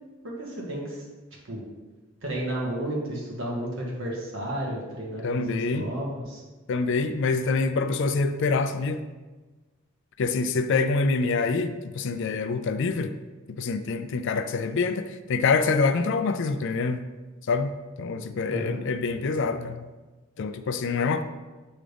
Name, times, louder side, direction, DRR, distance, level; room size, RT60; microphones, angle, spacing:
voice 1, 0.2-1.0 1.5-1.6 2.2-6.4 18.5-18.8, right 1 dB, 70° right, -3 dB, 1.5 m, -32 dB
voice 2, 5.2-5.9 6.7-9.0 10.2-13.1 13.5-17.1 17.5-19.9 20.4-21.2, left 4 dB, 65° left, 10 dB, 0.4 m, -26 dB
7.9 x 3.7 x 3.4 m, 1.3 s
head